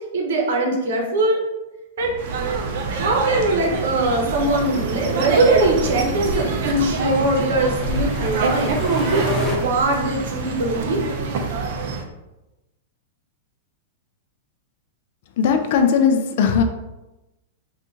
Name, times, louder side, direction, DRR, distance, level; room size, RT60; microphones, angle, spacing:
voice 1, 0.1-1.4 2.0-2.1 2.9-8.7 9.1-9.3 9.6-11.0, right 2 dB, 75° right, 1 dB, 0.8 m, -21 dB
sound 1, 2.0-9.6, equal, 5° left, 0.7 m, -31 dB
sound 2, 2.2-12.0, right 4 dB, 55° right, 0.5 m, -26 dB
voice 2, 15.4-16.6, left 7 dB, 50° left, 6 dB, 0.3 m, -18 dB
2.8 x 2.4 x 3.7 m, 0.99 s
supercardioid pair, 165°, 0 cm